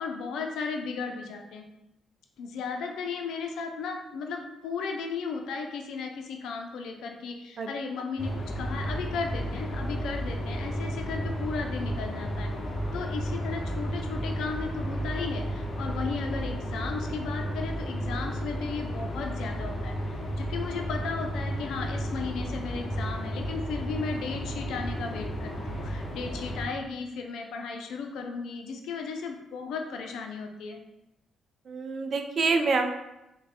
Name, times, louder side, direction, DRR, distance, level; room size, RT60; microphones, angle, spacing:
voice 1, 0.0-1.6 2.4-12.5 12.9-30.8, left 5 dB, 80° left, 3 dB, 0.4 m, -35 dB
sound 1, 8.2-26.7, equal, 40° left, 0.7 m, -33 dB
voice 2, 31.7-32.9, right 4 dB, 50° right, 5 dB, 0.4 m, -26 dB
3.0 x 2.2 x 4.2 m, 0.92 s
cardioid pair, 90°, 0 cm